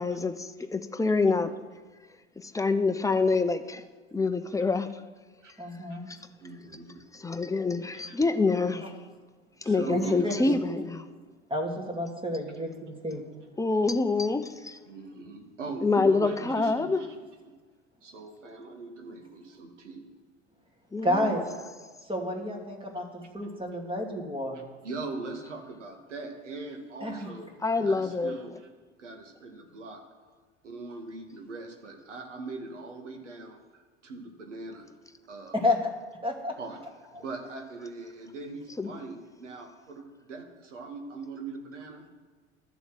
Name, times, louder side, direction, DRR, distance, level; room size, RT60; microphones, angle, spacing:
voice 1, 0.0-1.5 2.5-3.8 4.1-4.9 7.2-8.9 9.7-11.0 13.6-14.8 15.8-17.0 20.9-21.5 27.6-28.4 38.8-38.9, left 3 dB, 10° left, 9 dB, 0.8 m, -26 dB
voice 2, 5.6-6.1 9.9-10.3 11.5-13.2 21.0-21.4 22.0-24.6 27.0-27.3 27.8-27.9 35.5-35.9 36.2-36.5, left 1 dB, 15° right, 2 dB, 2.6 m, -30 dB
voice 3, 6.4-7.0 7.9-8.2 9.6-10.5 14.9-17.2 18.0-20.0 24.8-27.5 27.8-28.7 29.0-30.0 30.6-34.9 35.3-35.6 36.6-36.8 37.1-42.1, right 3 dB, 80° right, 4 dB, 1.9 m, -41 dB
12.5 x 7.0 x 7.7 m, 1.4 s
figure-of-eight pair, 70°, 36 cm